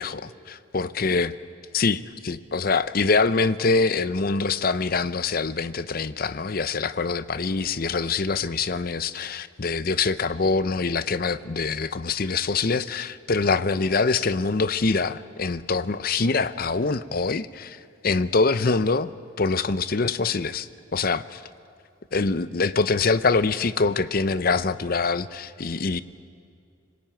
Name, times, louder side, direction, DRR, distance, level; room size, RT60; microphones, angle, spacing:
voice 1, 0.0-1.3 1.7-19.1 19.4-21.4 22.1-26.0, left 4 dB, 45° left, 14 dB, 0.6 m, -24 dB
25.0 x 20.5 x 9.0 m, 2.3 s
head